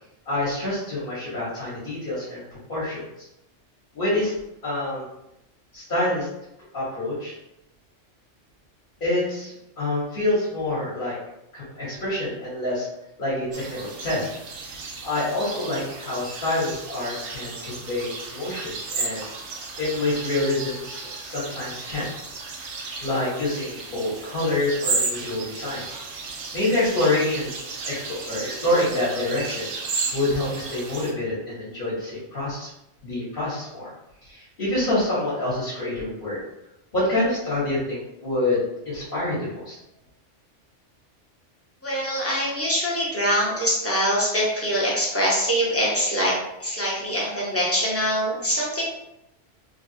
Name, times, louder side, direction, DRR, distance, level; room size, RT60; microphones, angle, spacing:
voice 1, 0.3-2.4 2.7-3.0 3.9-4.3 4.6-5.1 5.7-6.3 6.7-7.3 9.0-11.2 11.5-12.9 13.2-14.3 15.0-19.3 19.8-22.1 23.0-25.8 26.5-27.6 27.8-29.7 30.1-32.7 33.0-33.9 34.2-36.4 36.9-39.8, left 2 dB, 45° left, -9 dB, 1.2 m, -26 dB
sound 1, 13.5-31.1, right 4 dB, 75° right, 0.8 m, -34 dB
voice 2, 41.8-46.3 46.6-48.8, equal, 15° left, -5 dB, 0.7 m, -24 dB
3.2 x 2.3 x 2.6 m, 0.86 s
omnidirectional pair, 1.2 m